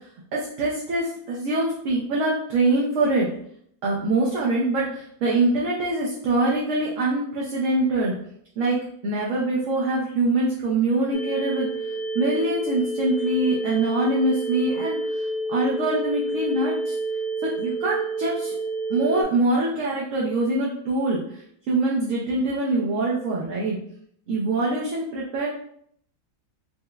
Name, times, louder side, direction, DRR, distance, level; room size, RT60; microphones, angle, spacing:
voice 1, 0.3-3.3 3.8-8.1 8.6-8.8 9.0-11.9 12.1-16.9 17.4-18.5 18.9-23.8 24.3-25.5, right 2 dB, 65° right, -5 dB, 0.9 m, -24 dB
sound 1, 11.1-19.2, right 1 dB, 45° left, 0.7 m, -29 dB
4.6 x 2.1 x 2.2 m, 0.67 s
omnidirectional pair, 1.6 m